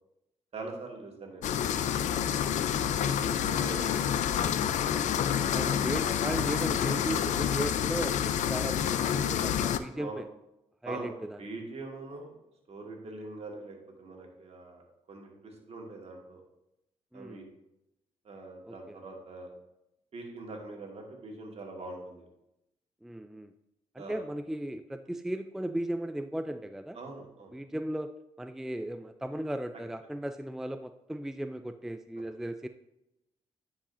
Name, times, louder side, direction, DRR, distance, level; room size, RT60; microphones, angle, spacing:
voice 1, 0.5-2.8 3.2-5.2 9.1-9.3 9.9-10.2 10.8-12.3 12.7-14.8 15.1-16.4 17.1-17.5 18.2-19.5 20.1-22.3 24.0-24.2 26.9-27.5, right 2 dB, 55° right, 1 dB, 1.8 m, -43 dB
sound 1, 1.4-9.8, left 9 dB, 75° left, 0.4 m, -28 dB
voice 2, 5.5-10.2 10.8-11.4 17.1-17.4 18.6-19.0 23.0-23.5 23.9-27.0 27.5-28.1 28.4-32.7, right 1 dB, 5° right, 8 dB, 0.3 m, -36 dB
9.9 x 4.8 x 2.6 m, 0.87 s
cardioid pair, 65°, 12 cm